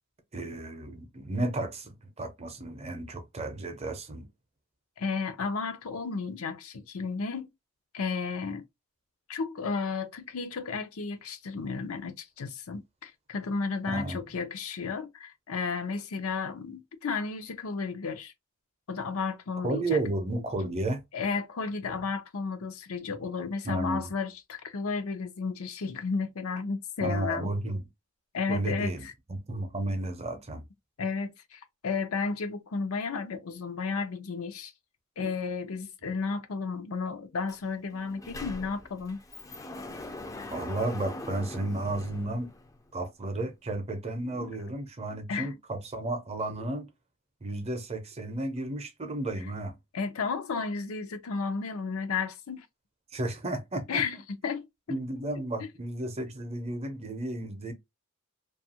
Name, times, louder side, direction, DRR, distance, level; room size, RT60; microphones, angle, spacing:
voice 1, 0.3-4.3 13.9-14.2 19.6-21.0 21.9-22.0 23.6-24.1 27.0-27.8 28.5-30.6 40.5-42.5 42.9-46.9 47.4-49.7 53.1-54.0 54.9-57.7, right 2 dB, 30° right, 0.6 m, -33 dB
voice 2, 5.0-7.5 7.9-8.6 9.3-18.3 18.9-20.0 21.1-27.5 28.3-29.1 31.0-34.7 35.2-39.2 44.3-44.5 45.3-45.5 49.0-49.1 49.9-52.7 53.9-54.2 54.4-54.7, left 4 dB, 90° left, 0.6 m, -33 dB
Sliding door, 37.5-37.6 37.9-42.9, left 2 dB, 15° left, 0.4 m, -42 dB
2.7 x 2.4 x 2.7 m
head